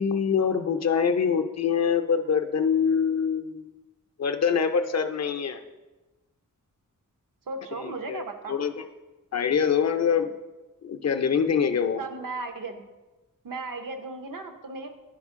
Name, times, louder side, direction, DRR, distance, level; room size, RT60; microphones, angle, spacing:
voice 1, 0.0-3.7 4.2-5.6 7.8-8.8 9.3-10.3 10.8-12.0, left 6 dB, 55° left, 7 dB, 0.5 m, -25 dB
voice 2, 7.5-8.6 12.0-12.8 13.4-14.9, right 3 dB, 80° right, 6 dB, 0.8 m, -36 dB
10.0 x 4.4 x 3.6 m, 1.1 s
wide cardioid pair, 125°, 33 cm